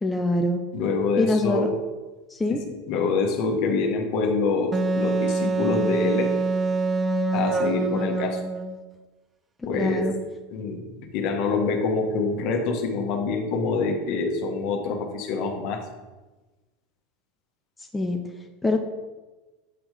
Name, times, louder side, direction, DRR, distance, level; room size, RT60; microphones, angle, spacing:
voice 1, 0.0-0.6 1.2-1.7 2.3-2.6 9.7-10.1 17.9-18.2 18.6-18.8, left 2 dB, 15° left, 3 dB, 0.8 m, -23 dB
voice 2, 0.7-1.8 2.5-2.6 2.9-6.3 7.3-8.4 9.7-10.1 10.5-10.9 11.1-15.8, left 4 dB, 55° left, 3 dB, 1.4 m, -25 dB
Wind instrument woodwind instrument, 4.7-8.8, right 3 dB, 25° right, 0.7 m, -25 dB
7.9 x 4.5 x 5.1 m, 1.2 s
hypercardioid pair, 85°, 0 cm